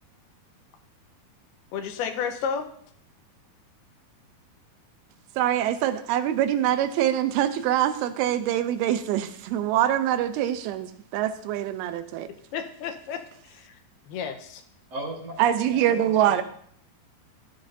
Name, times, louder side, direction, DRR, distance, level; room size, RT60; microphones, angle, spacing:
voice 1, 1.7-2.7 12.5-13.7 14.1-14.6, left 7 dB, 80° left, 6 dB, 2.8 m, -32 dB
voice 2, 5.4-12.3 15.4-16.4, right 11 dB, 85° right, 10 dB, 2.6 m, -24 dB
voice 3, 14.9-16.4, right 1 dB, 50° right, -1 dB, 2.1 m, -38 dB
14.0 x 11.0 x 2.7 m, 0.63 s
omnidirectional pair, 4.5 m